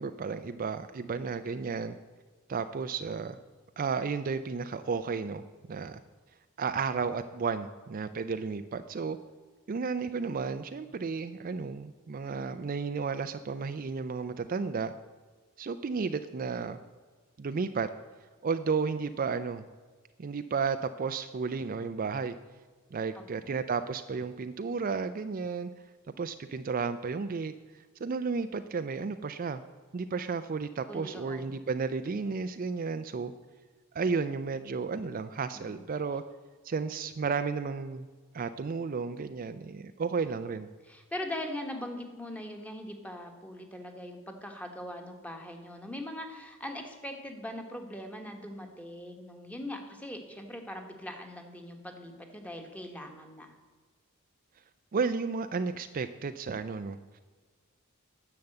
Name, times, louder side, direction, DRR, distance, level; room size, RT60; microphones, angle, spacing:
voice 1, 0.0-2.0 2.5-3.4 3.8-6.0 6.6-9.2 9.7-14.9 15.6-16.8 17.4-17.9 18.4-19.6 20.2-22.4 22.9-25.7 26.2-29.6 29.9-33.3 33.9-36.2 36.6-38.1 38.3-40.7 54.9-57.2, right 5 dB, 40° right, 9 dB, 0.4 m, -33 dB
voice 2, 30.9-31.5 35.5-35.8 40.2-40.4 40.8-53.5, left 1 dB, 5° left, 4 dB, 1.3 m, -41 dB
10.5 x 6.9 x 7.8 m, 1.4 s
head